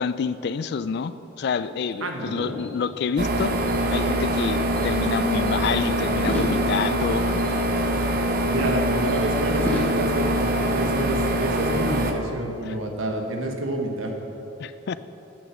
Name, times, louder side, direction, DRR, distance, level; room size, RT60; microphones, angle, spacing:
voice 1, 0.0-3.5 3.9-7.4 12.6-12.8 14.6-14.9, left 6 dB, 55° left, 14 dB, 0.3 m, -28 dB
sound 1, 1.6-4.4 4.7-5.6 6.1-9.2 9.6-11.9, left 1 dB, 5° left, 1.0 m, -36 dB
voice 2, 2.0-2.6 8.5-14.1, right 1 dB, 90° right, 2 dB, 1.2 m, -28 dB
sound 2, 3.2-12.1, right 1 dB, 45° right, 0.7 m, -24 dB
8.6 x 6.7 x 6.1 m, 2.9 s
head